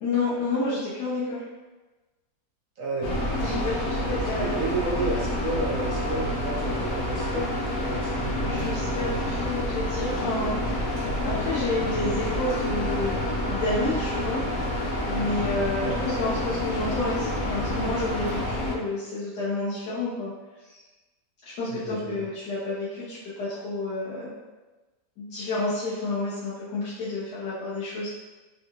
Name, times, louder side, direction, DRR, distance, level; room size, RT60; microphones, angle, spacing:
voice 1, 0.0-1.4 3.4-4.5 8.4-14.4 15.0-20.3 20.6-20.8 21.4-24.4 25.2-28.2, left 2 dB, 90° left, -10 dB, 1.5 m, -30 dB
voice 2, 2.8-3.2 4.2-8.6 15.8-16.0 21.8-22.3, right 2 dB, 60° right, -4 dB, 1.1 m, -32 dB
sound 1, 3.0-18.7, left 1 dB, 70° left, 1.1 m, -28 dB
3.7 x 2.3 x 2.9 m, 1.2 s
omnidirectional pair, 1.7 m